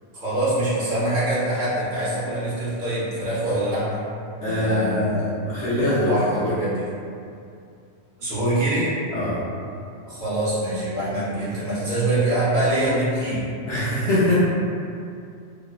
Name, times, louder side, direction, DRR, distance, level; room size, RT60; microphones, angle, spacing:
voice 1, 0.1-4.0 4.4-5.3 5.7-6.8 8.2-8.9 10.1-13.5, right 1 dB, 45° right, -9 dB, 0.8 m, -24 dB
voice 2, 4.4-5.1 5.5-6.1 6.4-6.5 9.1-9.4 13.7-14.4, left 1 dB, 75° left, -10 dB, 0.9 m, -23 dB
2.8 x 2.1 x 2.3 m, 2.5 s
omnidirectional pair, 1.3 m